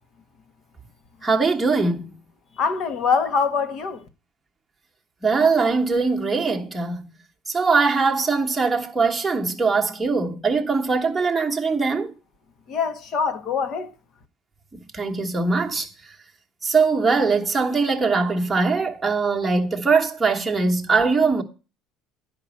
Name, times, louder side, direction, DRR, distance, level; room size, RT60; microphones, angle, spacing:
voice 1, 1.2-2.1 5.2-7.1 7.5-12.1 14.9-15.9 16.6-21.4, right 4 dB, 10° right, 1.4 m, -21 dB
voice 2, 2.6-4.0 12.7-13.9, left 5 dB, 45° left, 1.3 m, -24 dB
10.5 x 5.2 x 6.3 m
cardioid pair, 140°, 0 cm